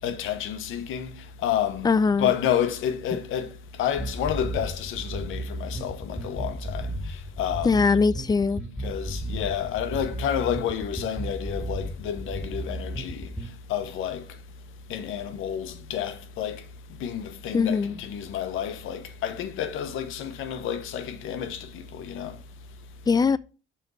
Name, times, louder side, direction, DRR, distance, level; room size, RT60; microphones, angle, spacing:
voice 1, 0.0-7.9 8.8-14.4 14.9-16.7 17.0-22.4, left 9 dB, 85° left, 1.0 m, -30 dB
voice 2, 1.8-2.3 7.6-8.6 17.5-18.0 23.1-23.4, left 5 dB, 20° left, 0.4 m, -21 dB
sound 1, 4.0-13.5, right 1 dB, ahead, 2.1 m, -34 dB
5.8 x 4.5 x 6.1 m
cardioid pair, 90°, 20 cm